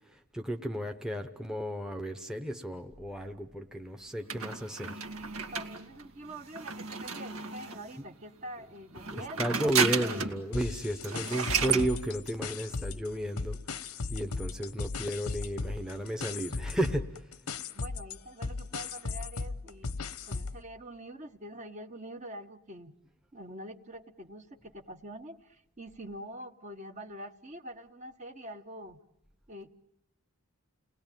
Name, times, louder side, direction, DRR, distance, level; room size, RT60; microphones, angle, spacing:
voice 1, 0.3-4.9 9.1-13.6 14.1-17.1, right 1 dB, 5° right, 5 dB, 0.9 m, -33 dB
sound 1, 4.3-7.9 8.9-10.4 10.7-10.8 11.0-11.9, right 6 dB, 85° right, 2.1 m, -32 dB
voice 2, 5.5-10.3 17.7-23.0 23.3-29.0 29.5-29.8, right 1 dB, 30° right, 8 dB, 1.1 m, -45 dB
sound 2, 10.5-13.1 13.4-20.6, left 4 dB, 85° left, 1.1 m, -37 dB
30.0 x 19.5 x 9.1 m, 0.88 s
head